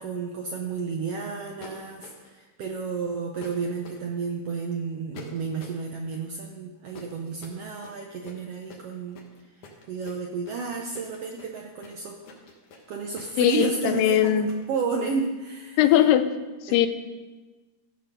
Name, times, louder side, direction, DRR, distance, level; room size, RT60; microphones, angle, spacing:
voice 1, 0.0-9.2 9.6-12.2 12.9-15.9 16.7-16.9, right 4 dB, 90° right, 1 dB, 1.3 m, -32 dB
sound 1, 1.6-2.4 3.4-4.0 5.1-5.8 6.9-14.6, left 4 dB, 65° left, 2.7 m, -47 dB
voice 2, 13.4-14.5 15.8-16.3 16.7-16.9, left 11 dB, 85° left, 11 dB, 2.2 m, -20 dB
15.0 x 6.7 x 5.3 m, 1.2 s
omnidirectional pair, 4.0 m